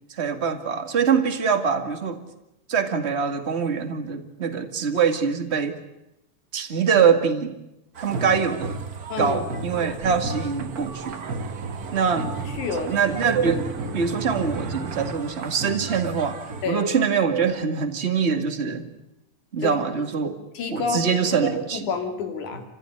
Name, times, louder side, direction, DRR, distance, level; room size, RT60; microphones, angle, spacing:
voice 1, 0.1-2.2 2.7-5.8 6.5-7.5 8.0-8.8 9.2-11.2 11.9-12.3 12.9-13.7 13.9-16.4 16.7-18.8 19.5-20.4 20.7-21.9, right 6 dB, 25° right, 6 dB, 1.9 m, -23 dB
sound 1, 8.0-16.6, right 3 dB, 45° right, 1.2 m, -34 dB
voice 2, 9.1-9.4 12.5-13.0 16.6-16.9 19.6-19.7 20.5-21.4 21.7-22.6, left 5 dB, 75° left, 5 dB, 4.1 m, -29 dB
sound 2, 9.9-15.2, right 5 dB, 80° right, 3.3 m, -37 dB
29.5 x 16.0 x 9.9 m, 0.90 s
omnidirectional pair, 3.6 m